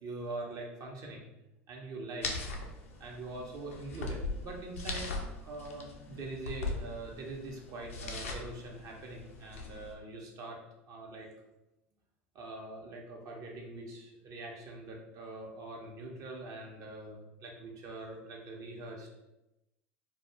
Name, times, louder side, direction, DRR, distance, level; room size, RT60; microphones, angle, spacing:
voice 1, 0.0-1.3 1.7-2.3 3.0-5.1 5.4-10.6 10.9-11.3 12.3-19.1, right 2 dB, 50° right, 0 dB, 0.7 m, -43 dB
sound 1, 2.2-9.9, left 3 dB, 85° left, 0.4 m, -40 dB
2.3 x 2.2 x 3.0 m, 0.94 s
hypercardioid pair, 75°, 7 cm